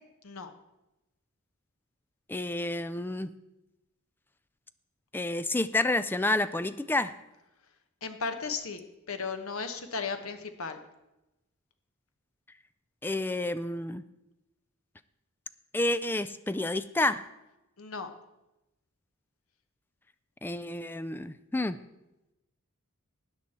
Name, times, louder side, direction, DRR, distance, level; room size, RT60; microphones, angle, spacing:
voice 1, 2.3-3.3 5.1-7.1 13.0-14.0 15.7-17.2 20.4-21.8, left 2 dB, 10° left, 13 dB, 0.3 m, -29 dB
voice 2, 8.0-8.8 9.1-10.8 17.8-18.1, left 4 dB, 75° left, 7 dB, 1.1 m, -35 dB
13.0 x 9.0 x 4.3 m, 0.95 s
head